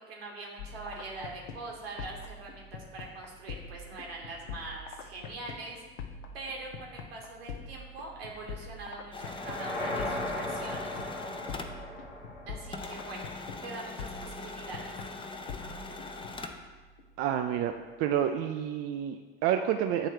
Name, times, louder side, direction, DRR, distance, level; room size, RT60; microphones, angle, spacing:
voice 1, 0.0-5.8 6.3-11.0 12.5-13.3 13.6-15.0, right 3 dB, 75° right, -1 dB, 1.4 m, -43 dB
sound 1, 0.6-18.2, left 4 dB, 65° left, 0.7 m, -45 dB
sound 2, 9.1-12.4 12.7-16.7, left 3 dB, 15° left, 0.6 m, -42 dB
sound 3, 9.2-13.3, left 1 dB, 85° left, 1.1 m, -37 dB
voice 2, 17.2-17.7 18.0-20.1, right 10 dB, 50° right, 6 dB, 0.4 m, -29 dB
8.5 x 3.2 x 4.7 m, 1.3 s
figure-of-eight pair, 60°, 30 cm